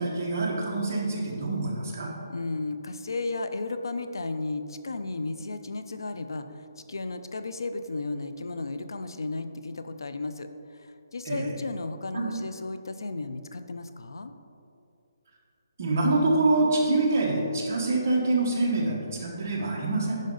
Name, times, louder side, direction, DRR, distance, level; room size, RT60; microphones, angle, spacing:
voice 1, 0.0-2.1 11.2-11.5 12.1-12.3 15.8-20.2, right 2 dB, 35° right, -3 dB, 1.5 m, -25 dB
voice 2, 2.3-10.5 10.7-14.3, left 3 dB, 85° left, 10 dB, 0.6 m, -34 dB
10.0 x 5.3 x 3.9 m, 2.6 s
hypercardioid pair, 175°, 2 cm